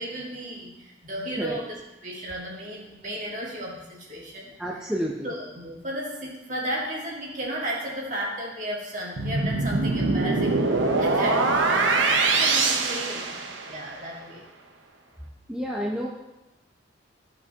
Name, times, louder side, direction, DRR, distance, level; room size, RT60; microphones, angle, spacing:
voice 1, 0.0-4.5 5.2-10.7 11.0-13.3 13.6-14.4, right 1 dB, 40° right, -3 dB, 1.9 m, -34 dB
voice 2, 4.6-5.3 15.5-16.1, equal, 5° right, -4 dB, 0.6 m, -29 dB
sound 1, 9.2-13.9, right 3 dB, 85° right, 0.9 m, -23 dB
13.5 x 5.9 x 2.9 m, 1.0 s
head